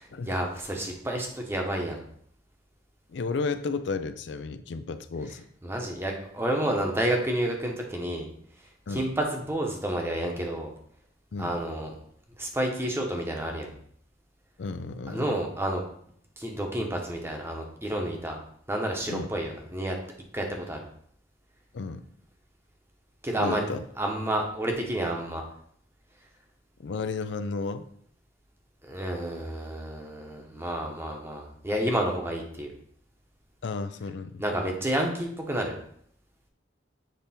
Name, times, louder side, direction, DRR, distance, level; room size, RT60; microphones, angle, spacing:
voice 1, 0.0-2.0 5.6-8.3 8.6-10.7 11.4-11.9 12.4-13.7 15.1-15.8 16.4-18.4 18.7-20.0 20.3-20.8 23.2-23.7 24.0-25.4 28.8-32.7 34.4-35.8, right 1 dB, 15° right, 1 dB, 0.9 m, -30 dB
voice 2, 3.1-5.5 8.9-9.1 11.3-11.6 14.6-15.3 19.1-19.3 21.7-22.0 23.4-23.8 26.8-27.9 33.6-34.4, left 4 dB, 75° left, 12 dB, 0.4 m, -33 dB
7.5 x 3.4 x 4.2 m, 0.66 s
head